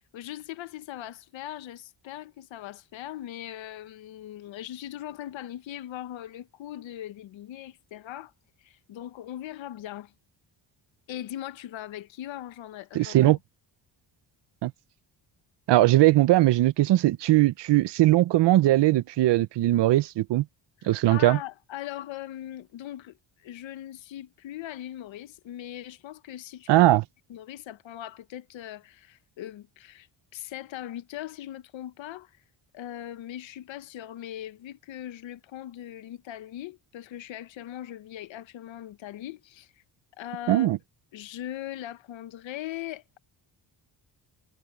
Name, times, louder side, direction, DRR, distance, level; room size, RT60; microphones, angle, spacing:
voice 1, 0.1-8.3 8.6-10.1 11.1-13.4 20.8-27.0 27.3-32.3 32.7-39.7 40.2-40.7 41.1-43.2, left 12 dB, 85° left, 1.2 m, -40 dB
voice 2, 12.9-13.4 14.6-14.7 15.7-20.4 20.8-21.4 26.7-27.0 40.5-40.8, right 15 dB, 70° right, 0.7 m, -20 dB
cardioid pair, 170°, 44 cm